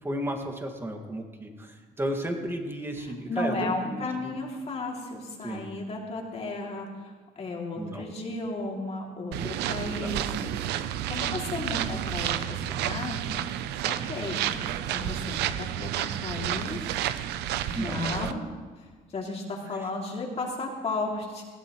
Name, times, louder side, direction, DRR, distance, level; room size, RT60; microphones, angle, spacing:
voice 1, 0.0-4.3 5.4-5.7 7.7-8.0 9.7-10.7 11.3-12.0 17.7-18.4 19.7-19.9, equal, 15° right, 3 dB, 2.0 m, -35 dB
voice 2, 3.3-10.2 11.1-13.4 13.8-16.8 17.2-17.3 17.7-18.4 19.1-21.4, left 2 dB, 40° left, -1 dB, 2.7 m, -34 dB
sound 1, 9.3-18.3, right 11 dB, 85° right, 0.6 m, -31 dB
19.0 x 15.5 x 3.1 m, 1.5 s
cardioid pair, 110°, 17 cm